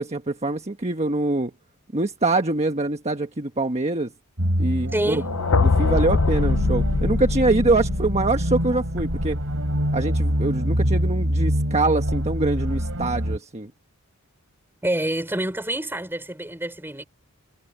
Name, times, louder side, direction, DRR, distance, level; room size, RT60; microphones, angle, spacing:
voice 1, 0.0-1.5 1.9-4.1 4.6-5.2 5.8-9.4 9.9-13.7, right 2 dB, 30° right, 1.3 m, -24 dB
sound 1, 4.4-13.4, equal, 65° right, 7.8 m, -25 dB
voice 2, 4.9-5.3 14.8-17.0, right 1 dB, 10° right, 6.1 m, -27 dB
sound 2, 5.2-9.2, left 3 dB, 70° left, 0.8 m, -23 dB
head